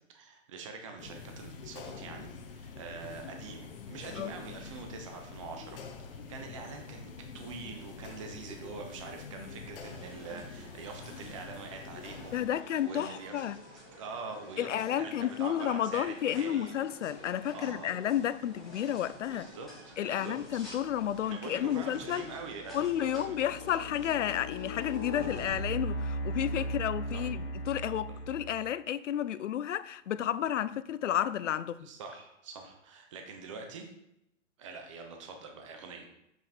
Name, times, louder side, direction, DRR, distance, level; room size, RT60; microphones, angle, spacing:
voice 1, 0.1-5.8 6.1-12.4 12.8-13.4 14.0-16.7 17.5-17.9 19.3-20.6 21.3-24.0 27.1-27.2 28.1-28.2 31.8-33.9 34.6-36.1, right 4 dB, 25° right, 0.9 m, -44 dB
sound 1, 1.0-12.4, left 5 dB, 45° left, 1.1 m, -46 dB
sound 2, 9.8-25.6, equal, ahead, 1.6 m, -51 dB
voice 2, 12.3-13.6 14.6-19.5 20.0-22.3 22.7-31.9, left 10 dB, 65° left, 0.6 m, -31 dB
sound 3, 20.9-21.2 21.8-28.7, equal, 25° left, 1.6 m, -38 dB
7.4 x 6.1 x 4.4 m
hypercardioid pair, 170°, 39 cm